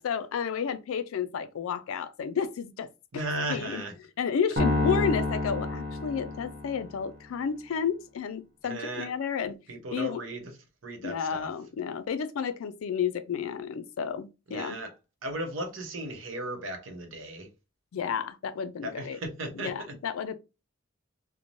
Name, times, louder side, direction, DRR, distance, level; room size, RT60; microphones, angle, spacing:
voice 1, 0.0-2.9 3.1-3.2 3.5-3.8 4.2-9.6 9.9-10.2 11.0-14.8 17.9-19.2 19.5-20.3, left 7 dB, 85° left, 0.4 m, -31 dB
voice 2, 3.1-3.9 8.6-9.1 9.7-10.5 10.8-11.5 14.5-14.9 15.2-17.5 18.8-19.7, right 1 dB, 70° right, 0.7 m, -35 dB
sound 1, 4.6-6.9, left 2 dB, 50° right, 0.9 m, -28 dB
3.0 x 2.1 x 2.5 m
head